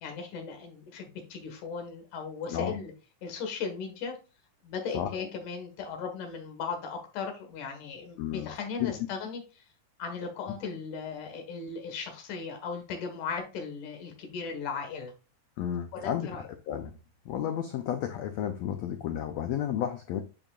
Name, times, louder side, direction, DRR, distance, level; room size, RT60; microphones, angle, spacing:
voice 1, 0.0-2.9 3.2-4.2 4.6-9.6 10.0-15.1 15.9-16.5, left 5 dB, 70° left, 4 dB, 2.9 m, -37 dB
voice 2, 8.2-8.5 8.8-8.9 15.6-16.9 17.2-20.2, left 10 dB, 85° left, 6 dB, 1.5 m, -32 dB
10.0 x 5.3 x 2.4 m, 0.31 s
omnidirectional pair, 3.9 m